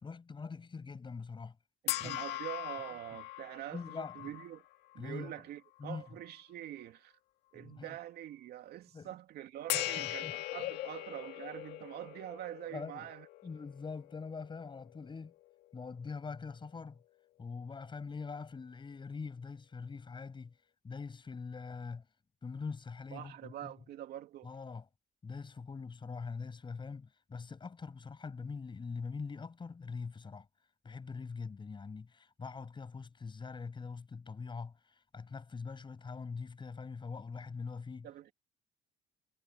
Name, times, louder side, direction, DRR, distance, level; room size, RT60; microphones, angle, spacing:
voice 1, 0.0-1.6 2.0-2.2 3.7-4.3 5.0-5.3 5.8-6.0 7.5-8.0 8.9-9.1 9.7-10.3 12.7-13.1 13.4-15.3 15.7-17.0 17.4-20.6 20.8-22.1 22.4-23.7 24.4-24.8 25.2-30.5 30.8-38.1, left 5 dB, 30° left, 6.2 m, -43 dB
voice 2, 1.8-4.6 4.9-7.2 7.5-13.3 23.1-24.5 38.0-38.3, right 12 dB, 70° right, 2.6 m, -45 dB
sound 1, 1.9-5.4 5.9-6.1 9.7-16.1, left 16 dB, 85° left, 1.9 m, -41 dB
cardioid pair, 110°, 17 cm